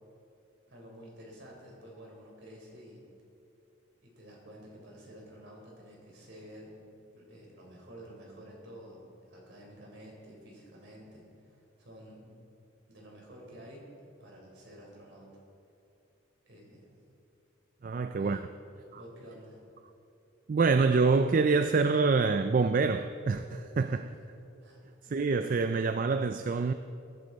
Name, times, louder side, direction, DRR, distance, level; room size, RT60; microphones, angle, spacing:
voice 1, 0.7-3.0 4.0-6.8 7.1-12.4 12.9-13.9 14.2-15.3 16.5-16.9 17.8-18.4 18.9-19.6 23.8-24.2 24.6-24.9, equal, 60° right, 4.1 m, -51 dB
voice 2, 17.8-18.4 20.5-24.1 25.1-26.7, right 4 dB, 40° right, 0.3 m, -26 dB
22.0 x 11.5 x 4.1 m
head